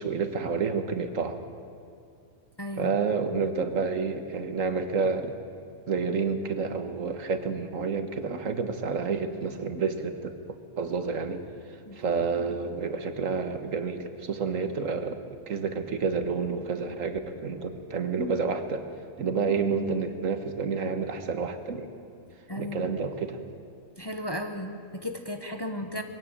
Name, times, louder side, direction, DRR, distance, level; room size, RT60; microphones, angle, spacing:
voice 1, 0.0-1.4 2.8-5.3 5.9-10.4 10.8-11.5 11.9-15.2 15.5-18.9 19.2-21.9 22.6-23.4, right 5 dB, 65° right, 8 dB, 1.7 m, -29 dB
voice 2, 2.6-2.9 11.9-12.0 22.5-22.9 24.0-26.0, left 1 dB, 20° left, 5 dB, 1.0 m, -35 dB
21.5 x 16.5 x 8.9 m, 2.5 s
omnidirectional pair, 1.5 m